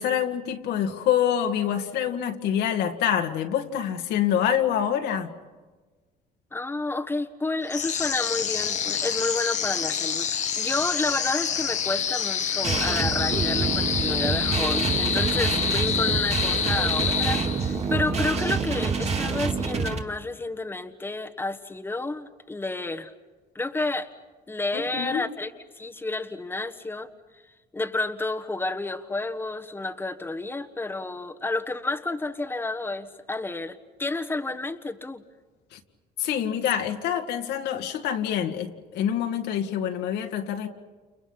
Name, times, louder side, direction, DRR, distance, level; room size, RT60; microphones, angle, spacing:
voice 1, 0.0-5.3 24.7-25.2 35.7-35.8 36.2-40.7, left 9 dB, 80° left, 4 dB, 2.3 m, -26 dB
voice 2, 6.5-23.1 23.5-24.1 24.5-25.5 25.8-27.1 27.7-35.2, left 2 dB, 10° left, 5 dB, 1.4 m, -30 dB
sound 1, 7.7-17.9, left 7 dB, 45° left, 1.3 m, -27 dB
sound 2, 12.6-20.0, right 5 dB, 40° right, 2.4 m, -27 dB
30.0 x 29.5 x 5.8 m, 1.3 s
cardioid pair, 110°, 17 cm